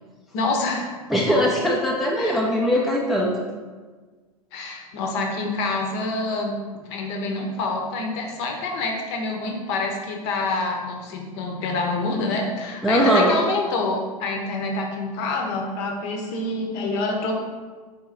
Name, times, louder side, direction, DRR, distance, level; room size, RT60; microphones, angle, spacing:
voice 1, 0.3-0.9 2.2-2.4 4.5-6.6 6.9-17.4, left 3 dB, 45° left, 2 dB, 0.7 m, -27 dB
voice 2, 1.1-3.3 12.8-13.3, equal, ahead, -3 dB, 0.4 m, -20 dB
4.2 x 2.7 x 3.9 m, 1.4 s
figure-of-eight pair, 90°, 20 cm